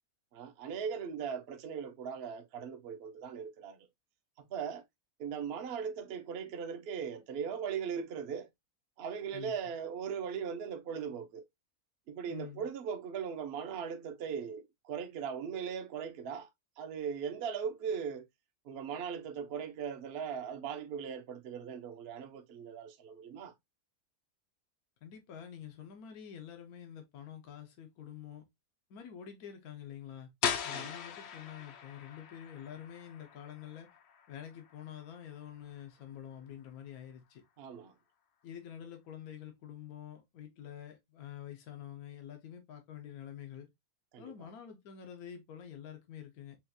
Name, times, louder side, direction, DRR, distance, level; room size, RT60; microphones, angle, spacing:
voice 1, 0.3-3.8 4.4-4.8 5.2-8.5 9.0-11.4 12.1-16.5 16.8-18.2 18.6-23.5 30.7-31.0 37.6-37.9 44.1-44.5, right 7 dB, 55° right, 0.8 m, -39 dB
voice 2, 12.3-12.7 25.0-28.5 28.9-30.3 30.6-33.9 34.3-37.4 38.4-43.7 44.2-46.6, left 9 dB, 80° left, 1.3 m, -47 dB
sound 1, 30.4-36.1, left 8 dB, 60° left, 0.7 m, -40 dB
5.5 x 2.4 x 2.6 m
omnidirectional pair, 1.6 m